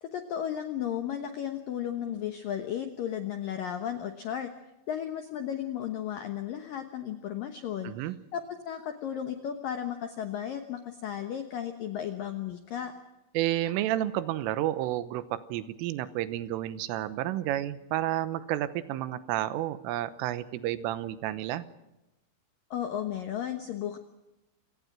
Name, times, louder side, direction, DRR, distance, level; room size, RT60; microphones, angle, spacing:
voice 1, 0.0-4.5 4.9-7.9 8.3-12.9 22.7-24.0, left 9 dB, 80° left, 7 dB, 2.0 m, -34 dB
voice 2, 7.8-8.2 13.4-21.6, right 13 dB, 85° right, 14 dB, 3.5 m, -31 dB
28.5 x 18.0 x 6.1 m, 0.97 s
omnidirectional pair, 5.8 m